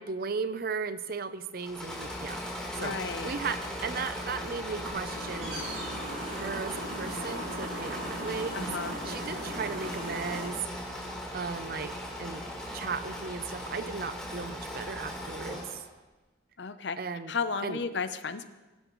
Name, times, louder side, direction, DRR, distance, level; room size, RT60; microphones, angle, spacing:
voice 1, 0.0-2.4 2.8-5.7 6.4-10.9 11.3-12.4 12.7-15.8 17.0-17.3 17.6-17.8, right 5 dB, 50° right, 12 dB, 0.6 m, -36 dB
Engine / Mechanisms, 1.6-15.8, equal, 5° left, 3.7 m, -38 dB
voice 2, 2.8-3.3 8.5-8.9 16.6-17.0 17.3-18.4, left 5 dB, 65° left, 11 dB, 0.7 m, -33 dB
sound 1, 4.3-10.5, right 1 dB, 80° right, 4.4 m, -39 dB
22.0 x 11.5 x 3.1 m, 1.2 s
head